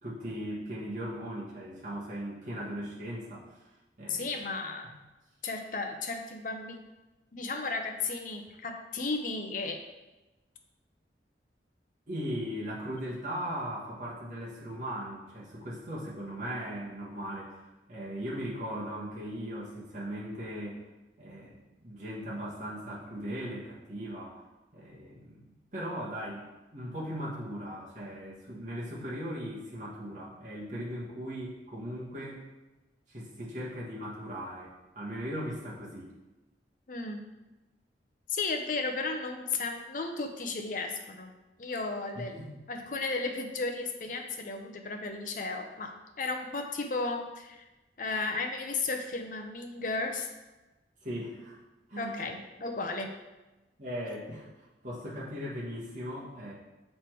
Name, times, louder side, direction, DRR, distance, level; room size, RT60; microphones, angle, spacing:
voice 1, 0.0-3.6 4.0-4.3 12.1-20.8 21.2-32.4 33.1-36.1 42.1-42.5 51.0-51.6 51.9-52.1 53.8-56.5, equal, 45° right, -6 dB, 1.2 m, -38 dB
voice 2, 4.1-4.9 5.4-6.8 7.3-9.8 36.9-37.2 38.3-41.3 41.6-47.6 48.0-50.3 52.0-53.1, left 3 dB, 50° left, 4 dB, 0.6 m, -34 dB
6.7 x 3.3 x 4.5 m, 1.1 s
head